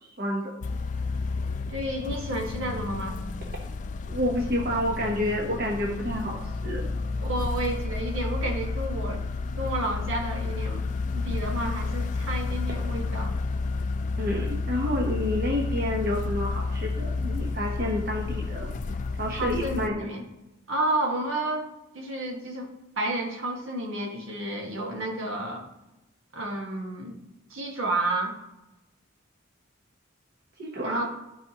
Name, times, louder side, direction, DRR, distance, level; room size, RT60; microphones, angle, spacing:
voice 1, 0.0-0.6 4.1-6.4 6.6-6.8 14.2-18.7 19.1-19.9 30.6-31.1, left 1 dB, 45° right, -1 dB, 1.0 m, -29 dB
sound 1, 0.6-19.9, left 3 dB, 35° left, 0.3 m, -31 dB
voice 2, 1.7-3.2 7.2-9.2 9.6-10.8 11.1-13.3 19.3-20.2 20.7-25.7 26.3-27.1 27.5-28.3 30.8-31.1, right 1 dB, 70° right, 1 dB, 1.5 m, -31 dB
13.0 x 4.9 x 2.9 m, 0.99 s
head